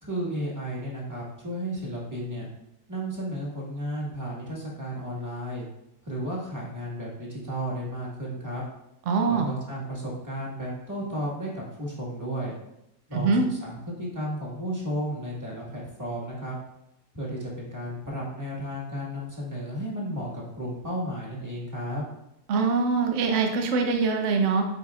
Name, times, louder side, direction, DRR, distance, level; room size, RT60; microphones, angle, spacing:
voice 1, 0.0-2.5 2.9-5.7 6.0-8.6 9.3-12.5 13.1-16.6 17.1-22.1, equal, 10° right, -5 dB, 1.7 m, -33 dB
voice 2, 9.1-9.5 13.1-13.4 22.5-24.7, right 4 dB, 60° right, 4 dB, 0.9 m, -23 dB
9.0 x 4.5 x 2.4 m, 0.84 s
omnidirectional pair, 1.6 m